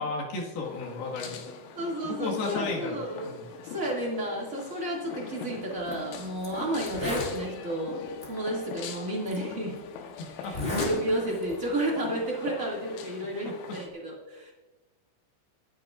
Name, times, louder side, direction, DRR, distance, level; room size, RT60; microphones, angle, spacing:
voice 1, 0.0-1.4 2.0-3.4 10.2-10.8 13.4-13.8, left 3 dB, 60° left, -2 dB, 3.4 m, -34 dB
sound 1, 0.6-13.9, left 7 dB, 80° left, 3.5 m, -42 dB
voice 2, 1.7-3.3 3.6-8.0 8.3-9.8 10.4-14.5, right 1 dB, 35° right, -4 dB, 1.2 m, -32 dB
Zipper (clothing), 5.8-5.9 6.4-6.5 6.8-7.4 8.2-8.3 9.3-9.4 10.4-10.9 11.3-11.6, left 1 dB, 30° left, 1.1 m, -31 dB
24.5 x 10.5 x 2.5 m, 1.1 s
omnidirectional pair, 5.6 m